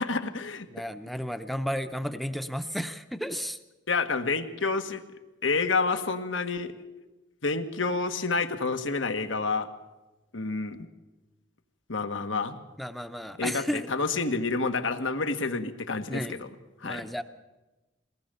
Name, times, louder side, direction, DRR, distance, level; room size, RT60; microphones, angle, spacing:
voice 1, 0.0-0.7 3.9-5.0 5.4-6.7 7.4-9.7 10.3-10.8 11.9-12.6 13.4-16.5 16.8-17.0, left 4 dB, 85° left, 8 dB, 1.6 m, -29 dB
voice 2, 0.7-3.6 12.8-13.9 16.1-16.3 16.8-17.2, equal, ahead, 9 dB, 0.6 m, -33 dB
23.0 x 19.0 x 6.9 m, 1.1 s
head